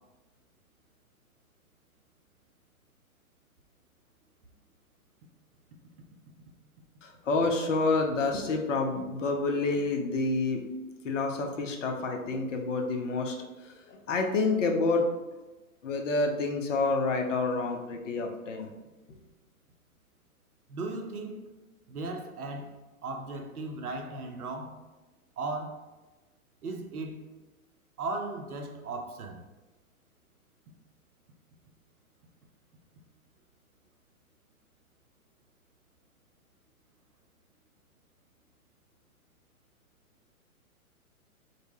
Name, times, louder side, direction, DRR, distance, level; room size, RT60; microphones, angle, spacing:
voice 1, 7.0-10.6 11.0-15.0 15.8-18.7 19.1-19.2, left 3 dB, 60° left, 0.6 m, -28 dB
voice 2, 20.7-21.5 21.9-24.8 25.4-25.8 26.6-27.2 28.0-29.4, right 3 dB, 80° right, 0.6 m, -37 dB
2.1 x 2.1 x 3.2 m
figure-of-eight pair, 115°, 43 cm